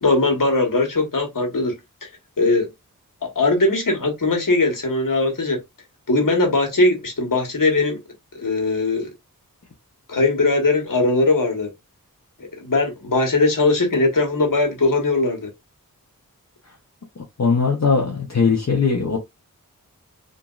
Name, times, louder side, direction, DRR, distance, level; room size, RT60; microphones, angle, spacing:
voice 1, 0.0-1.7 2.4-2.7 3.3-5.6 6.1-8.0 8.3-9.1 10.1-11.7 12.4-15.5, left 2 dB, 65° left, 1.2 m, -20 dB
voice 2, 17.4-19.2, left 5 dB, 50° left, 0.7 m, -19 dB
3.0 x 2.5 x 2.3 m
wide cardioid pair, 60°, 35 cm